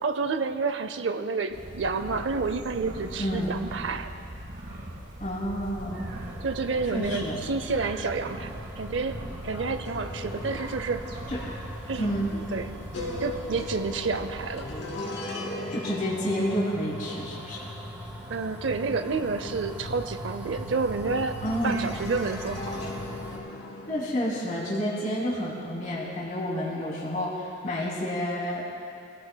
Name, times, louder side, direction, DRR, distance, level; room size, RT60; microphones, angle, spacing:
voice 1, 0.0-4.1 6.4-9.2 9.4-11.1 11.9-12.8 13.2-14.7 15.0-15.3 18.3-22.8, right 4 dB, 75° right, 9 dB, 0.6 m, -30 dB
sound 1, 1.5-14.9, right 1 dB, 60° right, 1.8 m, -41 dB
voice 2, 3.2-3.5 5.2-6.0 6.9-7.4 11.3-11.4 12.0-12.3 15.7-17.6 21.4-21.8 23.9-28.7, equal, 45° left, -6 dB, 2.9 m, -29 dB
sound 2, 5.9-23.4, equal, 10° right, 2.8 m, -41 dB
sound 3, 9.4-21.0 21.4-24.8, left 2 dB, 75° left, 2.6 m, -40 dB
24.5 x 17.5 x 2.3 m, 2.6 s
head